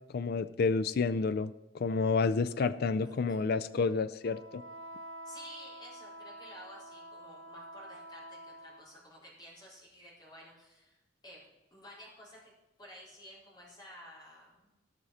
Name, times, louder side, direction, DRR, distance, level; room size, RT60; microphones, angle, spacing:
voice 1, 0.1-4.6, left 4 dB, 55° left, 14 dB, 0.4 m, -30 dB
Wind instrument woodwind instrument, 2.8-9.1, equal, 90° right, 0.9 m, -48 dB
voice 2, 3.0-3.4 5.2-11.0 11.2-11.4 11.7-12.5 12.8-14.7, equal, 20° left, -5 dB, 4.4 m, -52 dB
17.5 x 6.3 x 4.2 m, 1.0 s
head